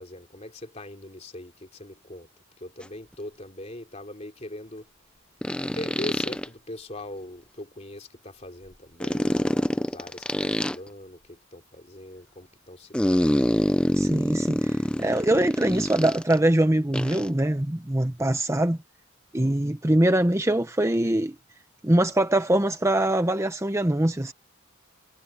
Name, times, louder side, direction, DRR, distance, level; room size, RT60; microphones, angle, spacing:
voice 1, 0.0-2.3 2.6-4.9 5.6-13.6, left 1 dB, 30° left, 3.1 m, -41 dB
sound 1, 2.8-2.9 5.4-6.5 9.0-10.7 12.9-16.4 16.9-17.3, equal, 5° left, 0.5 m, -25 dB
voice 2, 14.0-18.8 19.3-21.3 21.8-24.3, right 1 dB, 15° right, 0.8 m, -23 dB
head